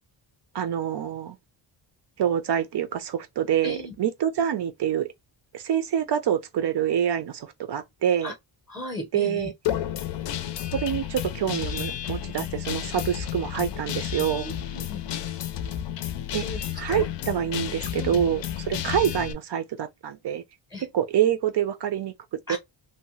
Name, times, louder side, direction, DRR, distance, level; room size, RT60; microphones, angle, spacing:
voice 1, 0.5-1.4 2.2-5.1 5.5-8.3 9.1-9.5 10.7-14.5 16.3-16.4 16.8-20.4 20.9-22.1 22.5-22.6, right 9 dB, 55° right, 0.6 m, -26 dB
voice 2, 3.6-3.9 8.2-8.3 8.7-9.5 14.3-15.0 16.4-17.1 17.9-18.2 20.7-20.9 22.5-22.6, left 2 dB, 5° left, 0.7 m, -36 dB
Guitar, 9.7-19.3, left 10 dB, 60° left, 0.5 m, -31 dB
2.8 x 2.1 x 3.0 m
wide cardioid pair, 160°, 50 cm